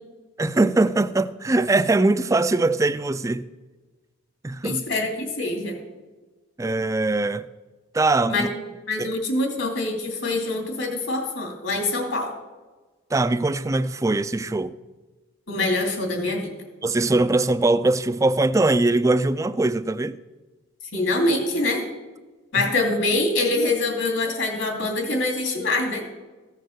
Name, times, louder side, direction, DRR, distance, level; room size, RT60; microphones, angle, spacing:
voice 1, 0.4-3.4 4.4-4.8 6.6-7.4 7.9-8.5 9.0-9.1 13.1-14.8 16.8-20.2, right 2 dB, 15° right, 0.3 m, -21 dB
voice 2, 4.6-5.8 8.3-8.5 8.9-12.4 15.5-16.5 20.9-21.8 22.5-26.0, left 2 dB, 70° left, 2.6 m, -24 dB
15.0 x 6.6 x 6.4 m
head